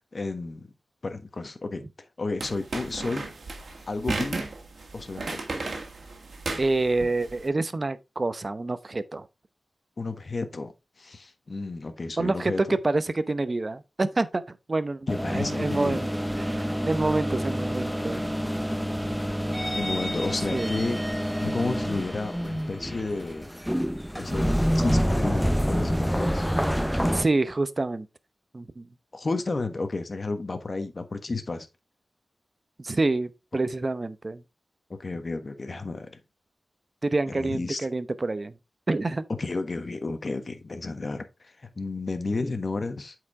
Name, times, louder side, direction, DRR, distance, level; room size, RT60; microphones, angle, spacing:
voice 1, 0.1-0.6 1.0-1.9 2.2-3.3 3.9-4.5 4.9-5.5 10.0-10.7 11.0-12.8 15.1-16.0 19.8-21.0 21.4-23.5 24.1-26.5 29.1-31.7 35.0-36.2 37.3-37.9 39.4-43.1, left 3 dB, 50° left, 1.3 m, -32 dB
sound 1, 2.4-7.4, right 3 dB, 70° right, 1.8 m, -34 dB
voice 2, 6.6-9.2 12.2-12.5 12.8-14.4 14.7-16.0 16.4-18.3 20.5-20.7 27.1-28.1 28.5-28.9 32.8-34.4 37.0-38.5 38.9-39.2, right 2 dB, 40° right, 0.7 m, -27 dB
sound 2, 15.1-27.2, equal, ahead, 0.5 m, -27 dB
8.3 x 4.9 x 3.6 m
wide cardioid pair, 70°, 0 cm